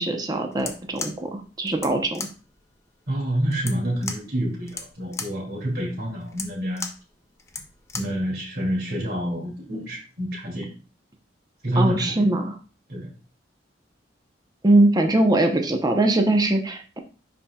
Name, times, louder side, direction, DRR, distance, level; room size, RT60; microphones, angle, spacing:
voice 1, 0.0-2.3 11.8-12.6 14.6-17.0, right 2 dB, 20° right, 4 dB, 0.7 m, -21 dB
sound 1, 0.5-8.2, left 4 dB, 15° left, 0.7 m, -37 dB
voice 2, 3.1-6.9 7.9-10.7 11.6-12.3 12.9-13.1, equal, 60° right, -1 dB, 2.5 m, -27 dB
10.5 x 4.2 x 2.3 m, 0.36 s
head